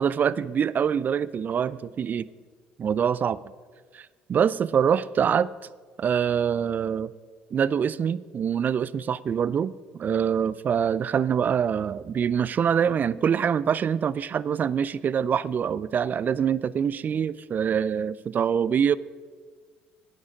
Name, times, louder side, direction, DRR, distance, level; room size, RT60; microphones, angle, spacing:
voice 1, 0.0-2.3 2.8-3.4 4.3-5.5 6.0-7.1 7.5-19.0, right 7 dB, 45° right, 19 dB, 0.4 m, -25 dB
12.0 x 9.7 x 5.1 m, 1.5 s
hypercardioid pair, 65°, 4 cm